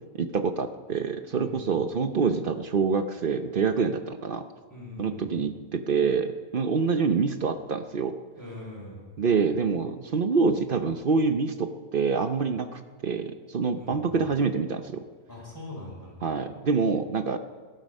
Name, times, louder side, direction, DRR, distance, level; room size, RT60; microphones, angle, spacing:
voice 1, 0.1-4.5 5.0-8.1 9.2-15.0 16.2-17.4, right 5 dB, 50° right, 8 dB, 0.6 m, -26 dB
voice 2, 1.3-1.7 4.7-5.3 8.4-9.0 13.7-14.2 15.3-16.2, left 2 dB, 10° left, -4 dB, 5.4 m, -42 dB
18.5 x 12.5 x 5.4 m, 1.5 s
omnidirectional pair, 1.7 m